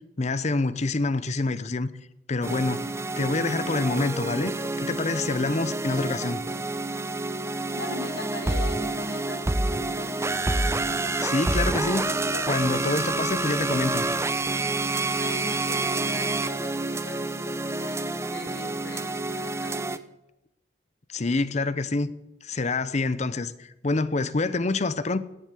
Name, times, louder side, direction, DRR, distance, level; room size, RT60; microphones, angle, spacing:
voice 1, 0.2-1.9 2.3-4.5 4.8-6.4 11.2-12.1 12.5-14.1 21.1-22.1 22.4-25.2, left 3 dB, 35° left, 0.7 m, -26 dB
sound 1, 2.4-20.0, right 2 dB, 15° right, 0.6 m, -28 dB
voice 2, 7.7-10.2 12.3-12.5 15.1-20.0, left 1 dB, 65° left, 3.8 m, -40 dB
17.0 x 7.5 x 8.3 m
head